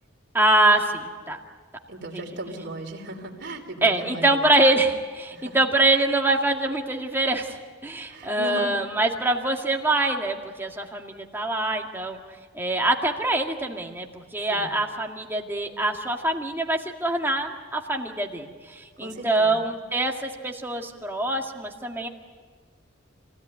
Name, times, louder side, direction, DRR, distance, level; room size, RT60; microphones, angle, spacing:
voice 1, 0.3-1.4 3.8-12.2 12.5-22.1, right 2 dB, 10° right, 1 dB, 1.9 m, -24 dB
voice 2, 1.9-4.4 5.3-5.6 8.1-8.7 14.4-14.8 19.0-19.7, right 2 dB, 55° right, 2 dB, 3.3 m, -37 dB
27.0 x 16.5 x 9.6 m, 1.5 s
head